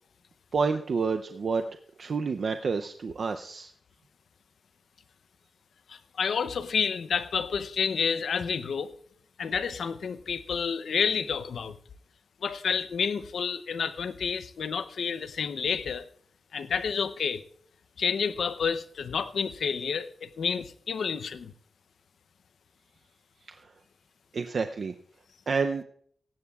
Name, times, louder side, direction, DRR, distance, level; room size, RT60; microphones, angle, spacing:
voice 1, 0.5-3.7 24.3-24.9 25.5-25.8, right 5 dB, 55° right, 7 dB, 0.5 m, -29 dB
voice 2, 5.9-8.9 9.4-11.8 12.4-16.1 16.5-17.4 18.0-21.5, left 6 dB, 90° left, 13 dB, 0.6 m, -29 dB
17.5 x 15.0 x 2.3 m, 0.63 s
wide cardioid pair, 155°, 0 cm